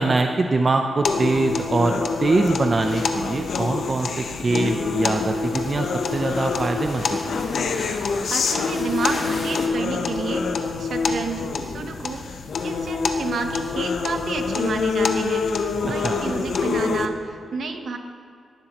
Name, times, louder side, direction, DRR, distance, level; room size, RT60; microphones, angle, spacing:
voice 1, 0.0-7.5 16.0-16.2, right 3 dB, 35° right, 4 dB, 0.5 m, -23 dB
sound 1, 1.0-17.1, left 4 dB, 70° left, 0.8 m, -26 dB
sound 2, 2.8-9.7, left 3 dB, 55° left, 1.7 m, -35 dB
voice 2, 8.3-10.5 10.8-18.0, right 4 dB, 65° right, 5 dB, 1.1 m, -30 dB
18.5 x 10.0 x 3.0 m, 2.3 s
wide cardioid pair, 115°, 0 cm